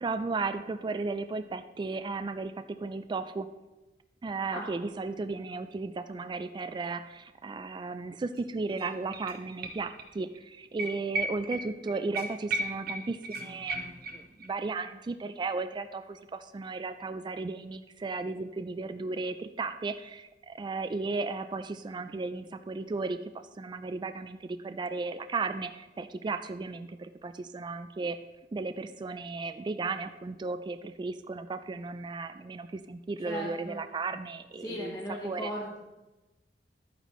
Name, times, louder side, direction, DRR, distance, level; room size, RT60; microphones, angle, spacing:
voice 1, 0.0-3.5 4.2-28.2 28.5-34.9 35.2-35.5, right 3 dB, 25° right, 10 dB, 0.3 m, -35 dB
sound 1, 8.4-8.5 8.7-10.1 10.4-10.5 10.8-14.5 14.8-14.9, right 2 dB, 60° right, 1.0 m, -36 dB
voice 2, 33.2-33.8 34.6-35.8, equal, 20° left, -4 dB, 1.3 m, -37 dB
12.0 x 9.1 x 3.1 m, 1.1 s
head